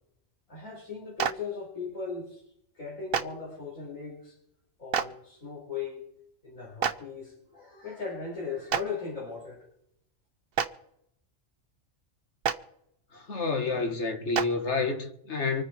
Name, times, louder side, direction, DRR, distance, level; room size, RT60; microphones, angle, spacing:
voice 1, 0.5-2.4 2.8-4.4 4.8-6.0 6.4-9.6, left 5 dB, 85° left, 5.2 m, -38 dB
Clapping, 1.2-1.3 3.1-3.2 4.9-5.0 6.8-6.9 8.7-8.8 10.5-10.7 12.4-12.5 14.3-14.4, right 7 dB, 50° right, 0.9 m, -26 dB
voice 2, 13.1-15.6, left 4 dB, 60° left, 2.1 m, -29 dB
25.5 x 9.6 x 4.6 m
omnidirectional pair, 1.3 m